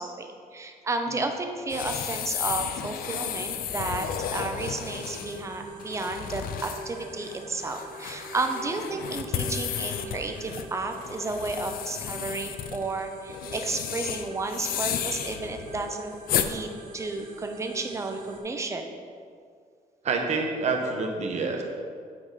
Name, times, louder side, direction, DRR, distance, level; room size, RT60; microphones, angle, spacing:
voice 1, 0.0-18.9, right 3 dB, 20° right, 5 dB, 0.6 m, -32 dB
sound 1, 1.7-16.5, left 9 dB, 70° left, 0.4 m, -33 dB
sound 2, 3.0-18.4, right 2 dB, 65° right, 1.2 m, -45 dB
voice 2, 20.0-21.6, right 4 dB, 50° right, 2 dB, 1.0 m, -27 dB
8.7 x 4.7 x 4.0 m, 2.1 s
cardioid pair, 150°, 15 cm